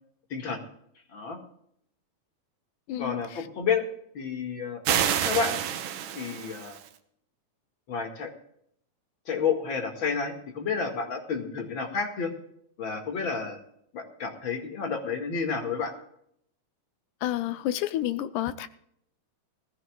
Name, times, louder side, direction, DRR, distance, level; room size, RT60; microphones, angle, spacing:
voice 1, 0.3-0.6 1.1-1.4 3.0-3.9 4.1-4.8 5.2-5.6 6.1-6.8 7.9-8.3 9.3-12.3 12.8-13.6 13.9-15.9, left 5 dB, 45° left, 3 dB, 2.5 m, -30 dB
voice 2, 2.9-3.4 17.2-18.7, left 13 dB, 85° left, 13 dB, 2.3 m, -30 dB
sound 1, 4.8-6.9, right 9 dB, 80° right, 2.5 m, -28 dB
21.0 x 15.0 x 2.4 m, 0.70 s
omnidirectional pair, 3.5 m